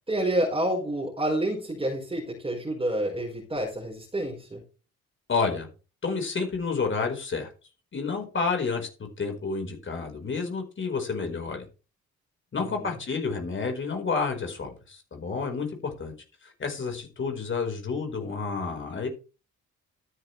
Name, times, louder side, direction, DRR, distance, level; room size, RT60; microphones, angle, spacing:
voice 1, 0.1-4.6 12.7-12.9, right 1 dB, 20° right, -3 dB, 4.5 m, -28 dB
voice 2, 5.3-5.7 6.0-7.5 7.9-11.6 12.5-16.1 16.4-19.1, left 4 dB, 40° left, 4 dB, 4.7 m, -30 dB
13.0 x 10.5 x 3.3 m, 0.33 s
cardioid pair, 100°, 29 cm